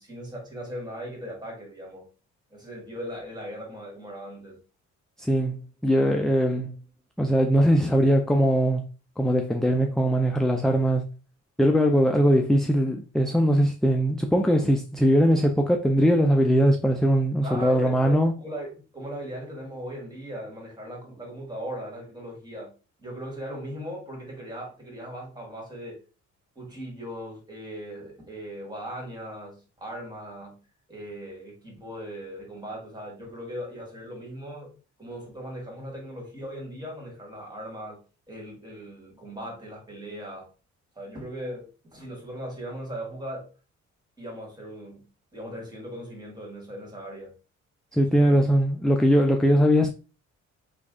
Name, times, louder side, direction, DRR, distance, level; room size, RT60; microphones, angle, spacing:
voice 1, 0.0-2.1 2.5-4.6 17.4-26.0 26.5-38.0 38.3-40.5 40.9-43.5 44.2-47.4 48.0-48.5, equal, 15° right, 1.8 m, -38 dB
voice 2, 5.2-6.7 7.2-8.8 9.2-11.0 11.6-18.3 47.9-49.9, equal, ahead, 0.3 m, -21 dB
3.2 x 2.3 x 3.7 m
cardioid pair, 90°, 30 cm